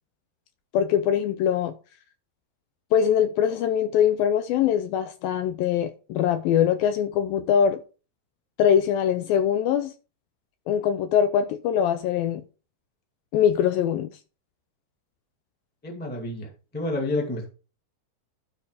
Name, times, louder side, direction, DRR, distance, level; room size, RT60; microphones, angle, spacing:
voice 1, 0.7-1.8 2.9-7.8 8.6-9.9 10.7-12.4 13.3-14.1, left 9 dB, 80° left, 2.2 m, -22 dB
voice 2, 15.8-17.4, left 2 dB, 5° left, 1.0 m, -29 dB
11.5 x 5.1 x 4.9 m
omnidirectional pair, 4.6 m